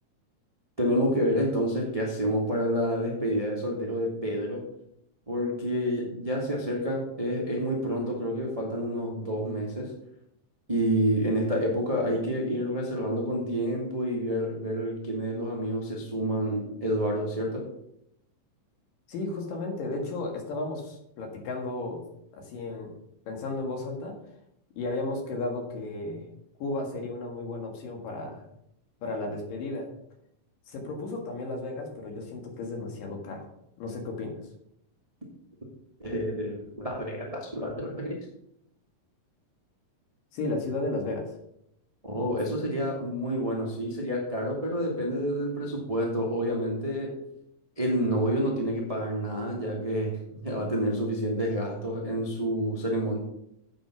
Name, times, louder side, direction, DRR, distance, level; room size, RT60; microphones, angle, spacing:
voice 1, 0.8-4.7 5.3-9.9 10.7-17.7 36.0-38.2 42.0-47.2 47.8-53.2, equal, 55° right, -2 dB, 0.4 m, -28 dB
voice 2, 19.1-22.0 22.3-22.9 23.3-24.2 24.8-26.3 26.6-28.4 29.0-29.9 30.7-33.5 33.8-34.4 40.3-41.3, left 2 dB, 70° left, 2 dB, 3.5 m, -34 dB
8.4 x 6.4 x 6.0 m, 0.76 s
omnidirectional pair, 4.0 m